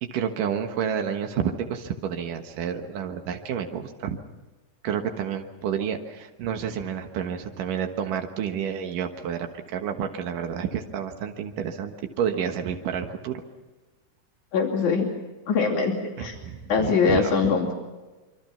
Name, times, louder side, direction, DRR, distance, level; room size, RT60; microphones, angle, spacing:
voice 1, 0.0-4.2 4.8-13.4 16.2-17.3, right 8 dB, 85° right, 5 dB, 3.1 m, -30 dB
voice 2, 14.5-15.1 15.5-16.4 16.7-17.7, left 5 dB, 65° left, -1 dB, 4.2 m, -22 dB
26.5 x 24.0 x 5.8 m, 1.2 s
omnidirectional pair, 3.7 m